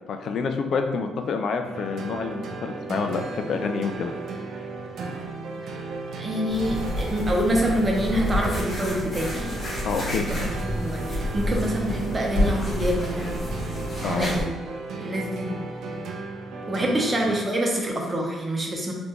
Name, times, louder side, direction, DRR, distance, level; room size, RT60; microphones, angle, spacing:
voice 1, 0.1-4.1 9.8-10.2 14.0-14.3, left 5 dB, 65° left, 6 dB, 0.3 m, -27 dB
sound 1, 1.6-17.4, right 3 dB, 70° right, 0.4 m, -35 dB
voice 2, 6.1-9.6 10.1-13.3 13.6-13.7 14.0-14.5 15.0-15.5 16.7-18.9, equal, 30° right, -1 dB, 0.7 m, -26 dB
sound 2, 6.5-14.4, left 1 dB, 40° left, 1.1 m, -29 dB
3.4 x 2.5 x 2.9 m, 1.1 s
cardioid pair, 90°, 0 cm